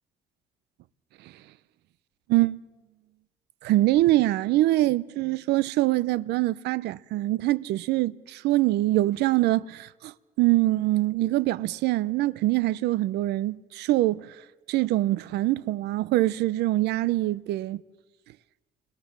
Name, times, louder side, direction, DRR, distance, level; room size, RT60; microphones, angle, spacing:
voice 1, 3.6-14.3 14.7-17.8, right 16 dB, 80° right, 0.7 m, -24 dB
29.5 x 21.5 x 7.4 m
cardioid pair, 110°, 17 cm